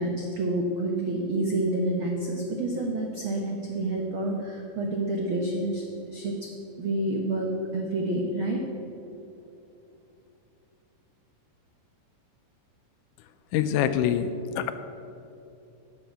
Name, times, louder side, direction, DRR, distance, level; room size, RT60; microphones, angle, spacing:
voice 1, 0.0-6.5 6.8-8.6, right 1 dB, 80° right, 1 dB, 1.1 m, -28 dB
voice 2, 13.5-14.7, left 9 dB, 80° left, 10 dB, 2.0 m, -25 dB
12.0 x 6.7 x 9.0 m, 2.7 s
omnidirectional pair, 3.9 m